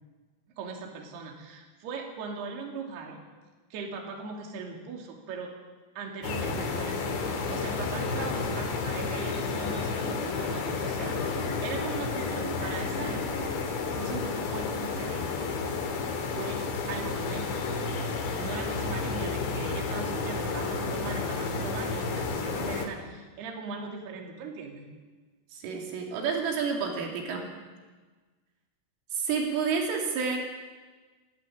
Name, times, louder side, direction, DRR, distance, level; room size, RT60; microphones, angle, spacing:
voice 1, 0.6-3.2 3.7-5.5 6.0-13.6 13.9-15.3 16.3-16.6 16.9-17.6 18.4-24.9, right 4 dB, 55° right, 0 dB, 4.3 m, -39 dB
sound 1, 6.2-22.9, left 4 dB, 60° left, 4.6 m, -31 dB
voice 2, 25.5-27.5 29.1-30.4, right 5 dB, 70° right, 1 dB, 5.2 m, -29 dB
30.0 x 12.0 x 10.0 m, 1.3 s
omnidirectional pair, 6.0 m